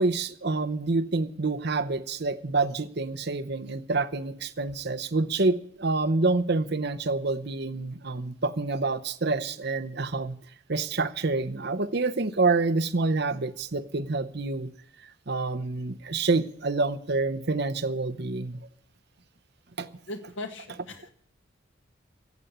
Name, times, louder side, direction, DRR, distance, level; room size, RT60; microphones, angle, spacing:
voice 1, 0.0-10.4 10.7-14.7 15.3-18.6 19.8-19.9, right 3 dB, 55° right, 0.9 m, -27 dB
voice 2, 20.1-21.1, left 2 dB, 70° left, 2.0 m, -38 dB
13.5 x 8.1 x 10.0 m
head